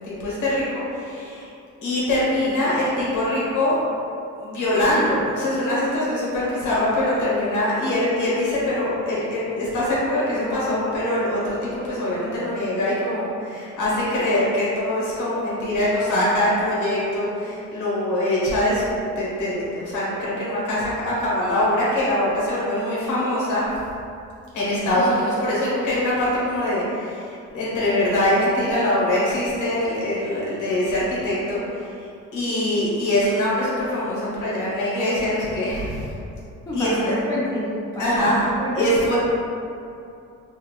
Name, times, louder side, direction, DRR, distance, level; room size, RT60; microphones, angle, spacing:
voice 1, 0.0-1.5 1.8-3.8 4.4-23.7 24.5-36.1 36.7-37.1 38.0-38.5 38.7-39.2, left 1 dB, 90° left, -7 dB, 1.0 m, -23 dB
voice 2, 36.7-37.7 37.9-38.3 38.6-38.7, left 1 dB, 10° left, -8 dB, 0.8 m, -28 dB
2.8 x 2.4 x 3.0 m, 2.6 s
cardioid pair, 90°, 30 cm